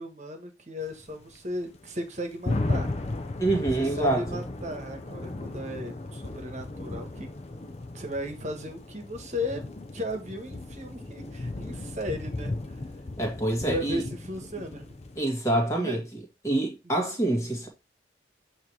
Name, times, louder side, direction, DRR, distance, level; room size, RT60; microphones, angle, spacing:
voice 1, 0.0-2.9 3.8-7.3 7.9-9.6 9.9-12.8 13.6-14.9 15.5-16.0, equal, 40° right, 1.4 m, -35 dB
sound 1, 0.8-15.2, left 2 dB, 40° left, 0.6 m, -35 dB
voice 2, 3.4-4.2 13.2-14.0 15.2-16.0 16.4-17.7, right 1 dB, 20° left, 1.9 m, -26 dB
8.3 x 3.0 x 4.8 m
head